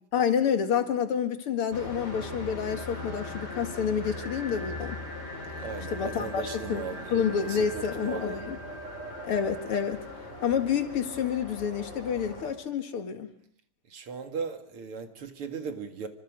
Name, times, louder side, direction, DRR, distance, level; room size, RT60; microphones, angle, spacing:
voice 1, 0.1-5.0 5.9-6.8 7.1-8.6 9.2-10.0 10.4-13.3, left 7 dB, 85° left, 7 dB, 2.8 m, -28 dB
sound 1, 1.7-12.5, left 2 dB, 30° left, 5.4 m, -39 dB
voice 2, 5.6-8.5 13.9-16.1, right 5 dB, 85° right, 6 dB, 2.9 m, -38 dB
28.0 x 25.5 x 5.1 m, 0.64 s
omnidirectional pair, 2.4 m